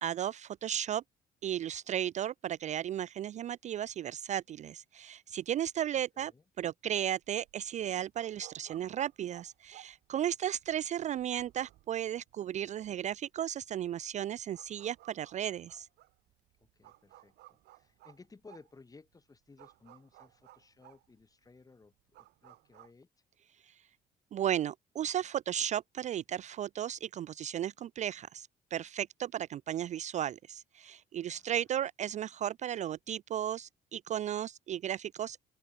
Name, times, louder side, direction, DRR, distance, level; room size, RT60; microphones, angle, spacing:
voice 1, 0.0-1.0 1.4-6.3 6.6-15.9 24.3-35.4, right 10 dB, 45° right, 0.4 m, -35 dB
voice 2, 6.1-6.4 10.7-10.9 16.6-23.1 31.2-31.6, left 3 dB, 20° left, 7.9 m, -58 dB
sound 1, 7.0-22.9, right 17 dB, 80° right, 5.4 m, -59 dB
open air
cardioid pair, 110°, 17 cm